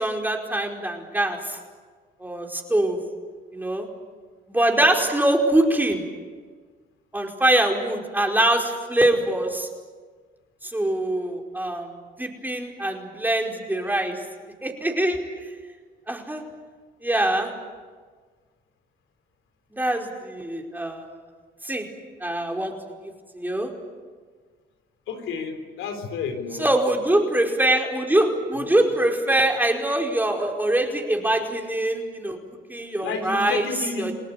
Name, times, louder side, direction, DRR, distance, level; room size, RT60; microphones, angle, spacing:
voice 1, 0.0-1.6 2.2-3.0 3.5-3.9 4.5-6.0 7.1-9.7 10.6-11.9 12.2-14.2 14.6-15.2 16.1-16.4 17.0-17.5 19.7-21.1 21.6-21.8 22.2-22.7 23.3-23.7 26.6-32.4 32.7-33.6 34.0-34.1, right 1 dB, 10° right, 2 dB, 4.9 m, -23 dB
voice 2, 25.1-26.7 28.6-28.7 33.0-34.1, left 5 dB, 85° left, 6 dB, 3.7 m, -31 dB
29.0 x 19.0 x 9.8 m, 1.5 s
cardioid pair, 90°, 20 cm